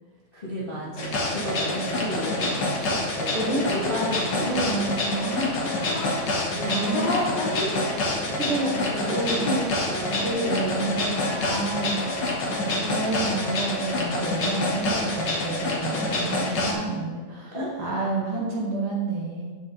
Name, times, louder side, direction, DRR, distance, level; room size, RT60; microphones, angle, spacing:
voice 1, 0.3-4.9 6.5-7.1 7.7-8.9 9.4-10.9 17.5-17.9, equal, 25° left, -6 dB, 1.3 m, -33 dB
sound 1, 1.0-16.7, left 2 dB, 45° left, 1.6 m, -27 dB
sound 2, 3.3-12.5, left 1 dB, 65° left, 2.9 m, -36 dB
voice 2, 3.3-5.8 6.5-7.1 8.4-9.5 10.0-12.0 12.5-19.5, right 3 dB, 55° right, -3 dB, 2.1 m, -29 dB
13.5 x 5.3 x 3.8 m, 1.3 s
omnidirectional pair, 3.4 m